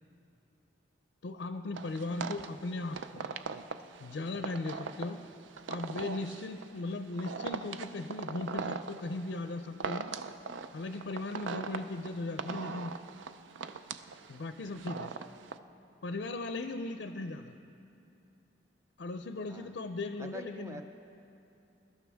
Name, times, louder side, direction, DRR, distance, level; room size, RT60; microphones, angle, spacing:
voice 1, 1.2-3.2 4.0-5.2 5.7-10.1 10.7-13.0 14.3-15.1 16.0-17.6 19.0-20.8, left 2 dB, 65° left, 8 dB, 0.5 m, -38 dB
sound 1, 1.7-15.6, right 5 dB, 85° right, 0.5 m, -40 dB
voice 2, 20.2-20.8, equal, 15° right, 7 dB, 0.4 m, -47 dB
22.0 x 12.5 x 3.5 m, 2.7 s
head